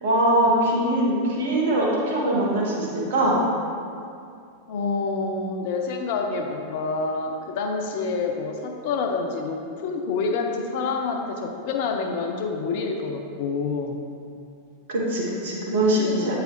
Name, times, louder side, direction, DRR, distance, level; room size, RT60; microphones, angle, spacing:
voice 1, 0.0-3.5 14.9-16.4, right 1 dB, 60° right, -4 dB, 1.4 m, -22 dB
voice 2, 4.7-14.0 15.8-16.4, left 4 dB, 50° left, 3 dB, 0.6 m, -27 dB
9.0 x 4.8 x 3.1 m, 2.4 s
figure-of-eight pair, 90°, 0 cm